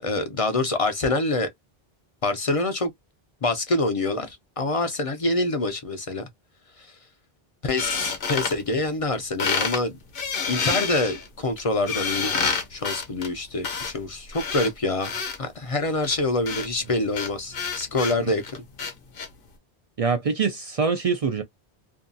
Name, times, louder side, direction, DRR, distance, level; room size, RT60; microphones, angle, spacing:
voice 1, 0.0-1.5 2.2-2.9 3.4-6.3 6.8-7.0 7.6-9.9 10.5-12.4 12.7-18.4, left 2 dB, 45° left, 0.4 m, -26 dB
sound 1, 7.8-9.1 9.4-9.8 10.1-15.4 16.0-19.3, left 5 dB, 65° left, 0.9 m, -29 dB
voice 2, 20.0-21.4, right 5 dB, 50° right, 0.4 m, -24 dB
2.6 x 2.3 x 2.5 m
omnidirectional pair, 1.0 m